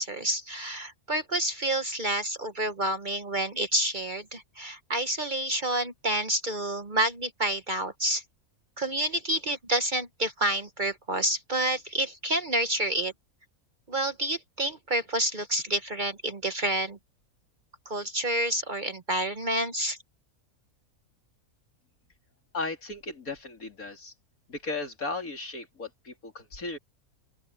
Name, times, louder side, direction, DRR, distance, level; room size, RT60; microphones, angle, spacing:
voice 1, 0.0-8.2 8.8-13.1 13.9-17.0 17.9-20.0, right 1 dB, 40° right, 1.0 m, -29 dB
voice 2, 22.5-24.1 24.5-26.8, left 3 dB, 75° left, 3.7 m, -36 dB
open air
omnidirectional pair, 1.5 m